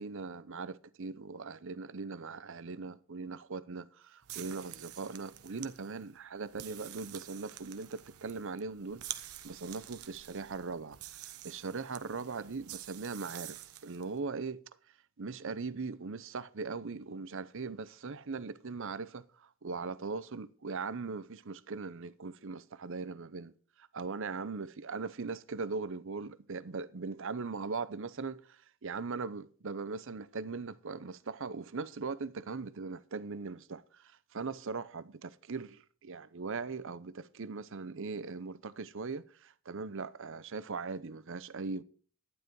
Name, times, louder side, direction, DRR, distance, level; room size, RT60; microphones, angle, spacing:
voice 1, 0.0-11.0 11.4-14.6 15.2-23.5 23.8-41.8, right 4 dB, 60° right, 0.7 m, -40 dB
sound 1, 4.2-14.1, right 13 dB, 85° right, 1.0 m, -48 dB
12.0 x 10.0 x 4.6 m
head